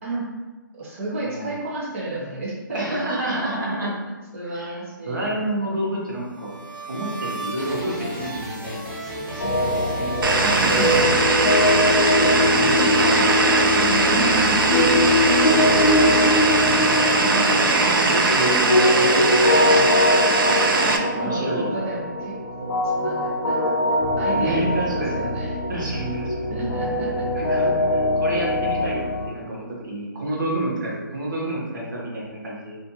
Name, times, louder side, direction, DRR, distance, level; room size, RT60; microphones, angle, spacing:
voice 1, 0.7-3.5 3.8-3.9 4.3-5.7 9.2-11.0 13.7-15.2 15.6-17.9 20.3-25.6 26.5-27.6 30.5-30.7, right 2 dB, 40° right, -4 dB, 0.8 m, -32 dB
voice 2, 2.7-3.9 4.4-4.8 5.0-6.6 6.9-8.8 9.3-10.1 10.6-11.7 12.1-13.7 16.0-16.4 17.2-20.3 21.1-21.8 24.3-25.3 25.7-26.7 27.3-29.0 29.3-32.8, right 1 dB, 65° right, -4 dB, 1.0 m, -29 dB
sound 1, 6.1-11.7, right 1 dB, 15° right, 0.4 m, -34 dB
sound 2, 9.4-29.3, left 1 dB, 45° left, 0.4 m, -22 dB
sound 3, 10.2-21.0, right 3 dB, 80° right, 0.4 m, -20 dB
2.5 x 2.2 x 2.7 m, 1.2 s
hypercardioid pair, 155°, 11 cm